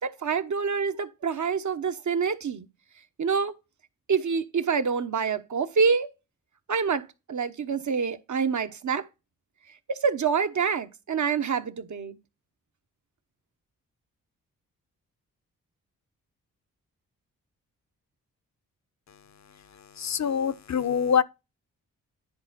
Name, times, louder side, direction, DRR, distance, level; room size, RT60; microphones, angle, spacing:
voice 1, 0.0-2.7 3.2-3.5 4.1-6.1 6.7-9.0 9.9-12.2, right 6 dB, 50° right, 1.2 m, -26 dB
voice 2, 20.0-21.2, left 7 dB, 45° left, 0.9 m, -24 dB
10.5 x 4.3 x 4.2 m
supercardioid pair, 40°, 37 cm